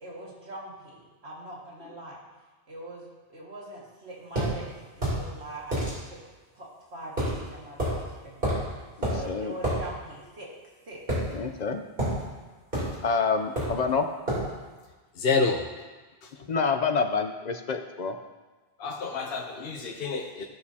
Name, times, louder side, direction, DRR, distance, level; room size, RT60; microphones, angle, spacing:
voice 1, 0.0-2.2 2.7-6.0 6.5-8.7 9.0-10.5 10.9-11.0, right 1 dB, 85° right, -5 dB, 2.2 m, -42 dB
sound 1, 4.4-4.5 5.0-5.2 5.7-5.9 7.2-7.4 7.8-8.0 8.4-8.7 9.0-9.2 9.6-9.8 11.1-11.6 12.0-12.2 12.7-13.0 13.6-13.8 14.3-14.5, right 1 dB, 55° right, 3.5 m, -27 dB
voice 2, 11.3-11.8 13.0-14.1 16.5-18.1, left 5 dB, 50° left, 6 dB, 0.7 m, -27 dB
voice 3, 15.2-15.6 18.8-20.4, left 4 dB, 65° left, 2 dB, 0.9 m, -28 dB
15.0 x 6.4 x 2.8 m, 1.3 s
omnidirectional pair, 1.1 m